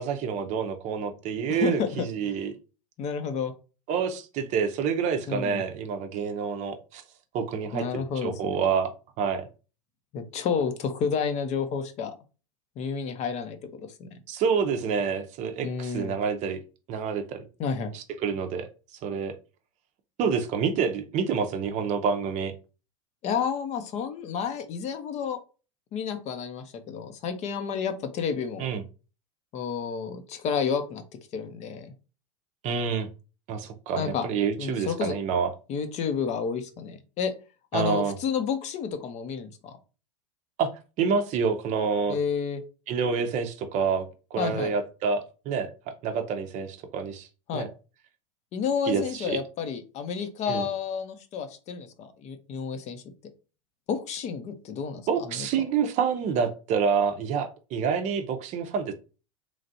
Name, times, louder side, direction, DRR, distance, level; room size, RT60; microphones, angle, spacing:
voice 1, 0.0-2.5 3.9-7.0 7.3-9.5 14.3-16.6 16.9-17.5 17.9-18.7 19.0-19.3 20.2-22.5 28.6-28.8 32.6-33.1 33.5-35.5 37.7-38.2 40.6-40.7 41.0-42.2 42.9-45.7 46.0-47.3 47.5-47.7 48.9-49.4 50.5-50.7 55.1-58.9, right 6 dB, 45° right, 7 dB, 0.6 m, -28 dB
voice 2, 1.5-2.4 3.0-3.5 5.3-5.6 7.7-8.6 10.1-12.1 12.8-13.6 14.0-14.1 15.6-16.2 17.6-17.9 23.2-25.4 25.9-28.7 29.5-31.0 31.3-31.9 34.0-34.3 34.6-35.1 35.7-37.3 37.7-39.7 42.1-42.6 44.4-44.7 47.5-47.7 48.5-53.0 53.9-55.5, left 6 dB, 40° left, 8 dB, 0.6 m, -30 dB
3.1 x 2.4 x 2.6 m, 0.33 s
hypercardioid pair, 95°, 17 cm